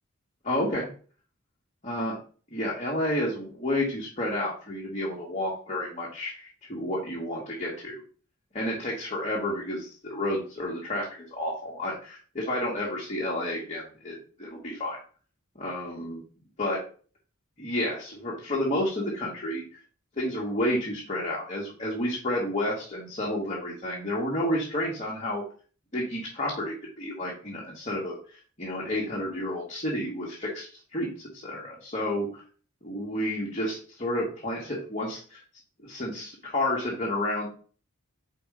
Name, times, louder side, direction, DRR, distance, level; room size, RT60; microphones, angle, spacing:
voice 1, 0.4-0.9 1.8-2.2 2.5-8.0 8.5-15.0 15.5-16.2 16.6-16.8 17.6-19.6 20.2-25.4 25.9-32.4 32.8-35.4 35.8-37.5, left 1 dB, 35° left, -4 dB, 1.8 m, -30 dB
5.0 x 4.9 x 5.0 m, 0.39 s
head